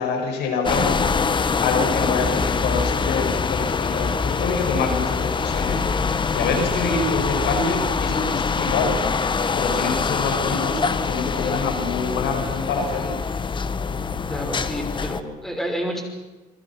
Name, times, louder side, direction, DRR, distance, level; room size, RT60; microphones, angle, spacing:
voice 1, 0.0-13.2, left 4 dB, 80° left, 5 dB, 5.7 m, -26 dB
sound 1, 0.6-15.2, left 5 dB, 30° left, 1.2 m, -24 dB
voice 2, 14.3-16.0, equal, ahead, 3 dB, 5.6 m, -29 dB
27.0 x 24.0 x 6.0 m, 1.1 s
cardioid pair, 110°, 17 cm